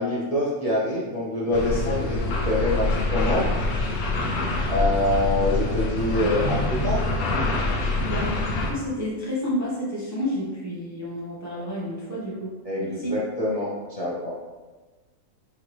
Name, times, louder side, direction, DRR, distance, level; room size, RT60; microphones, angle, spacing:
voice 1, 0.0-2.2 2.4-3.5 4.7-7.0 12.7-13.7 14.0-14.3, left 1 dB, 35° left, -7 dB, 0.6 m, -25 dB
sound 1, 1.5-8.7, left 2 dB, 80° left, 1.1 m, -25 dB
voice 2, 7.5-12.5 12.8-13.2, left 1 dB, 20° right, -7 dB, 0.5 m, -30 dB
4.7 x 2.8 x 3.0 m, 1.2 s
omnidirectional pair, 1.6 m